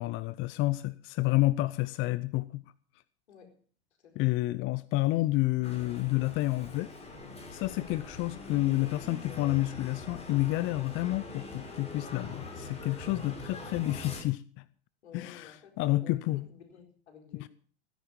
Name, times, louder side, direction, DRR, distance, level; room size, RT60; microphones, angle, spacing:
voice 1, 0.0-2.6 4.2-6.9 7.5-14.6 15.1-16.5 17.4-17.5, left 18 dB, 35° left, 0.6 m, -29 dB
voice 2, 3.3-3.6 4.0-4.3 15.0-17.5, left 7 dB, 75° left, 4.7 m, -53 dB
sound 1, 5.6-14.2, left 2 dB, 20° left, 5.6 m, -43 dB
17.0 x 10.5 x 7.1 m
hypercardioid pair, 100°, 33 cm